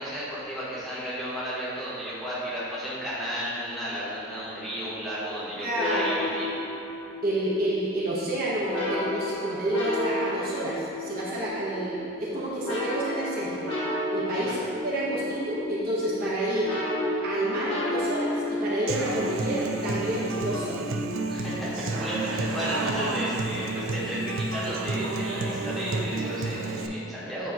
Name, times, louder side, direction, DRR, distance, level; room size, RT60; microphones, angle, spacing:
voice 1, 0.0-6.5 14.3-14.6 21.3-27.5, equal, ahead, -11 dB, 1.2 m, -33 dB
voice 2, 5.6-6.1 7.2-13.7 14.1-16.7 17.2-20.8, right 1 dB, 45° right, -7 dB, 1.0 m, -29 dB
sound 1, 5.7-22.0, left 1 dB, 70° left, 1.3 m, -33 dB
Human voice / Acoustic guitar, 18.9-26.9, right 2 dB, 85° right, 0.5 m, -30 dB
8.5 x 3.0 x 4.0 m, 2.6 s
head